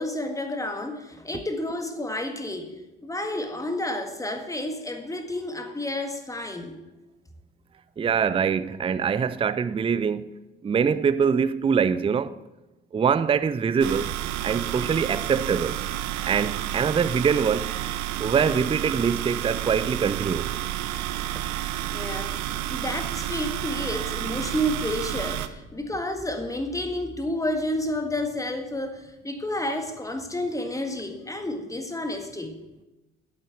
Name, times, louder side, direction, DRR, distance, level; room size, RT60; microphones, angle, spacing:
voice 1, 0.0-2.8 3.0-6.8 21.9-32.6, left 1 dB, 10° left, 1.7 m, -30 dB
voice 2, 8.0-10.3 10.6-12.4 12.9-14.1 14.4-15.8 16.3-17.7 18.2-20.5, right 6 dB, 15° right, 0.4 m, -24 dB
sound 1, 13.8-25.5, right 13 dB, 60° right, 0.7 m, -30 dB
8.4 x 8.2 x 8.0 m
figure-of-eight pair, 50°, 33 cm